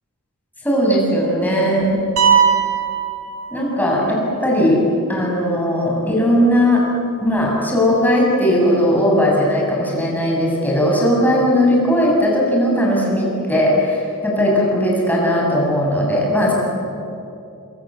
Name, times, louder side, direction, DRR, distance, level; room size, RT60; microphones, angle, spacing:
voice 1, 0.6-2.0 3.5-4.8 5.1-6.8 7.2-16.5, equal, 10° left, -3 dB, 7.8 m, -17 dB
sound 1, 2.2-4.1, right 7 dB, 85° right, 4.9 m, -18 dB
26.0 x 25.5 x 7.8 m, 2.7 s
head